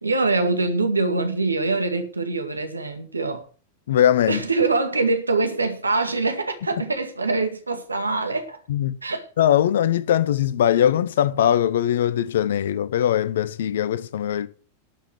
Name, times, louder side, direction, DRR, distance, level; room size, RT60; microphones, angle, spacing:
voice 1, 0.0-3.4 4.3-8.6 9.0-9.3, right 3 dB, 80° right, 2.1 m, -24 dB
voice 2, 3.9-4.4 8.7-8.9 9.4-14.5, left 10 dB, 60° left, 0.9 m, -20 dB
12.0 x 7.5 x 7.7 m
figure-of-eight pair, 90°, 0 cm